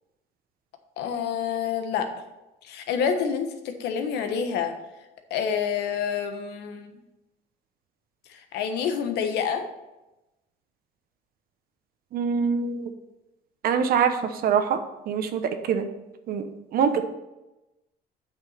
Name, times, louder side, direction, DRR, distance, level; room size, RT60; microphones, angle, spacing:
voice 1, 1.0-2.1 2.6-4.7 5.3-6.9 8.3-9.6, left 7 dB, 80° left, 6 dB, 1.2 m, -28 dB
voice 2, 12.1-12.9 13.6-14.8 15.1-15.9 16.3-17.0, right 7 dB, 60° right, 8 dB, 0.9 m, -24 dB
8.1 x 6.3 x 4.3 m, 0.99 s
cardioid pair, 110°, 17 cm